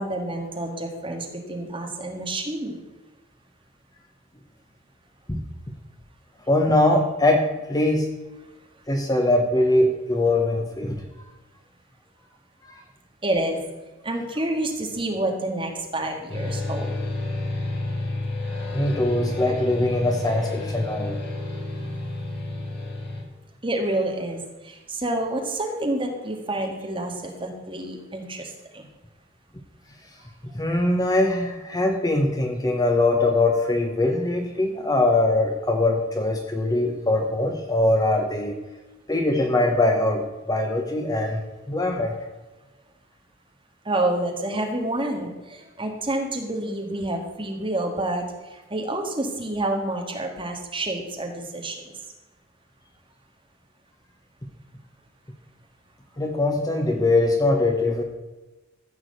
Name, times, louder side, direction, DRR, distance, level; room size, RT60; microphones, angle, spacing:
voice 1, 0.0-2.8 13.2-13.6 14.0-16.9 23.6-24.4 25.0-27.1 27.4-28.4 43.9-45.3 45.8-48.2 48.7-51.7, right 1 dB, 25° right, 2 dB, 1.8 m, -28 dB
voice 2, 6.5-8.1 8.9-11.0 12.6-12.8 18.7-21.2 30.5-38.6 39.1-41.4 41.7-42.1 56.2-58.0, left 2 dB, 15° left, 3 dB, 0.9 m, -22 dB
sound 1, 16.3-23.2, left 2 dB, 50° left, 2.5 m, -30 dB
14.5 x 4.8 x 7.9 m, 1.1 s
head